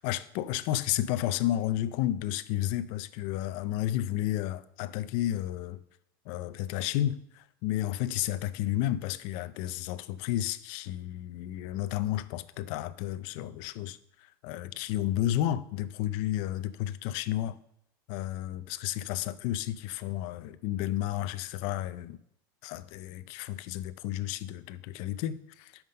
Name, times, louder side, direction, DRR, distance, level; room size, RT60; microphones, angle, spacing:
voice 1, 0.0-5.8 6.3-14.0 14.4-17.6 18.1-22.2 22.6-25.8, left 13 dB, 50° left, 0.5 m, -32 dB
5.8 x 5.6 x 6.5 m
supercardioid pair, 165°, 11 cm